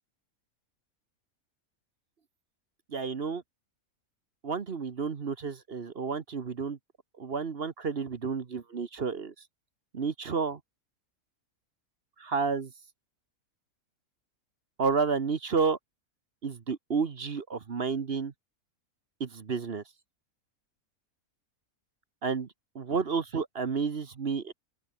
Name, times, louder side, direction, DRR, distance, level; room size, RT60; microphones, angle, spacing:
voice 1, 2.9-3.4 4.4-6.8 7.2-9.3 9.9-10.6 12.2-12.7 14.8-15.8 16.4-18.3 19.2-19.8 22.2-22.5 22.7-24.5, right 5 dB, 45° right, 1.3 m, -31 dB
open air
omnidirectional pair, 1.5 m